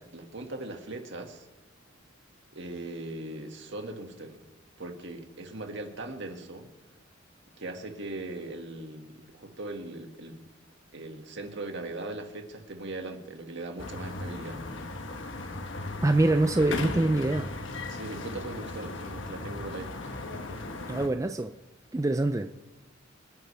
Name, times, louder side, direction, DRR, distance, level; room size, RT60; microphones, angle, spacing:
voice 1, 0.1-1.5 2.5-4.4 4.8-6.7 7.6-10.5 10.9-14.6 17.9-20.7 20.9-21.0, right 2 dB, 65° right, 2.0 m, -40 dB
sound 1, 13.8-21.1, left 2 dB, 65° left, 1.2 m, -37 dB
voice 2, 16.0-17.5 20.9-21.5 21.9-22.5, right 2 dB, 15° right, 0.4 m, -25 dB
26.5 x 9.5 x 3.4 m
head